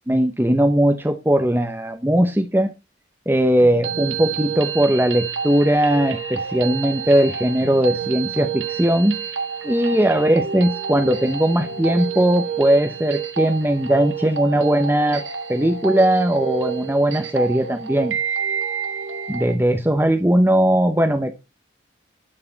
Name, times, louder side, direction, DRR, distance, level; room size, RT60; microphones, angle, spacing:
voice 1, 0.1-2.7 3.3-9.1 9.6-15.2 15.5-18.2 19.3-21.4, right 1 dB, 10° right, 6 dB, 0.8 m, -19 dB
sound 1, 3.6-19.6, right 7 dB, 85° right, 1.6 m, -29 dB
11.0 x 6.6 x 4.0 m, 0.26 s
head